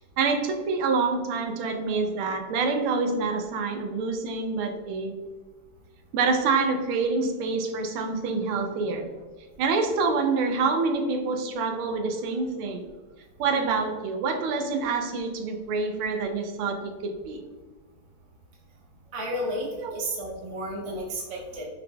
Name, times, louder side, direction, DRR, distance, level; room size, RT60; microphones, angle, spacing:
voice 1, 0.2-5.1 6.1-9.1 9.6-12.9 13.4-17.4 19.8-20.0, right 4 dB, 85° right, 5 dB, 1.5 m, -27 dB
voice 2, 19.1-19.7 19.9-21.7, equal, 35° right, -2 dB, 0.5 m, -32 dB
5.9 x 3.4 x 2.2 m, 1.3 s
omnidirectional pair, 2.3 m